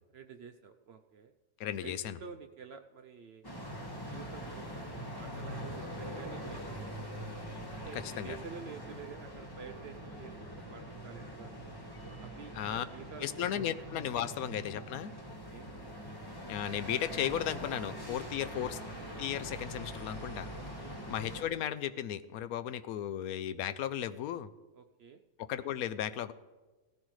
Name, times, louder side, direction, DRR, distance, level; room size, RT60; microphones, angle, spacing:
voice 1, 0.1-1.3 1.8-3.4 3.9-7.2 7.7-11.5 12.2-13.3 13.6-13.7 14.2-14.3 15.5-15.7 18.3-18.6 20.8-21.0 24.7-25.2, right 6 dB, 70° right, 6 dB, 0.6 m, -49 dB
voice 2, 1.6-2.2 7.9-8.4 12.5-12.8 13.2-15.1 16.5-18.8 19.2-20.5 21.1-24.5 25.4-26.3, left 10 dB, 75° left, 13 dB, 1.0 m, -35 dB
sound 1, 3.4-21.4, equal, 15° left, 1.4 m, -43 dB
17.0 x 14.0 x 3.2 m, 1.2 s
omnidirectional pair, 1.6 m